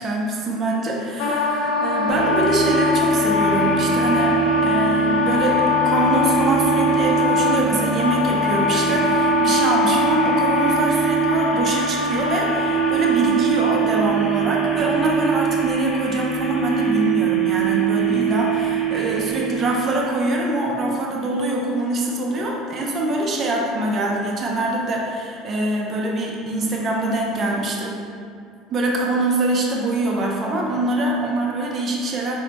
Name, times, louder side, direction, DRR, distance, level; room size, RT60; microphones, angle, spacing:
voice 1, 0.0-4.3 4.6-5.6 5.8-27.9 28.7-32.3, right 2 dB, 40° right, -1 dB, 0.7 m, -24 dB
Wind instrument woodwind instrument, 1.2-14.1, left 4 dB, 80° left, 0.6 m, -23 dB
sound 1, 2.1-20.4, right 7 dB, 30° left, 1.2 m, -23 dB
4.2 x 3.2 x 3.0 m, 2.3 s
supercardioid pair, 100°, 0 cm